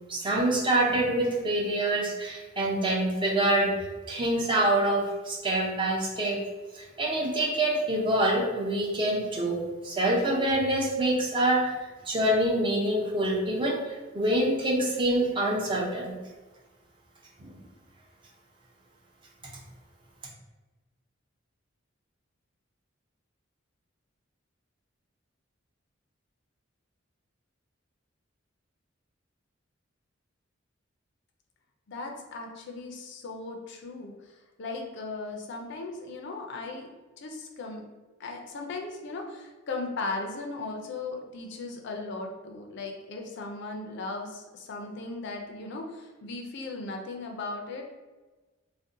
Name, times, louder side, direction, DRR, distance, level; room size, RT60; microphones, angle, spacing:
voice 1, 0.1-3.7 4.1-6.4 6.7-11.8 12.1-13.8 14.1-16.1, right 1 dB, 25° right, -2 dB, 0.6 m, -26 dB
voice 2, 31.9-36.9 37.2-37.8 38.2-47.8, left 3 dB, 60° left, 2 dB, 0.4 m, -37 dB
2.6 x 2.1 x 3.6 m, 1.2 s
head